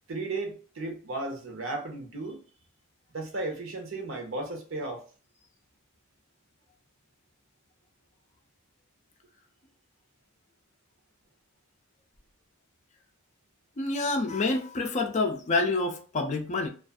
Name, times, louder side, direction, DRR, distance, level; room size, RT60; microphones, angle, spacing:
voice 1, 0.1-2.4 3.1-5.1, right 2 dB, 65° right, 0.8 m, -35 dB
voice 2, 13.8-16.7, left 3 dB, 30° left, 0.4 m, -27 dB
2.4 x 2.4 x 2.3 m
head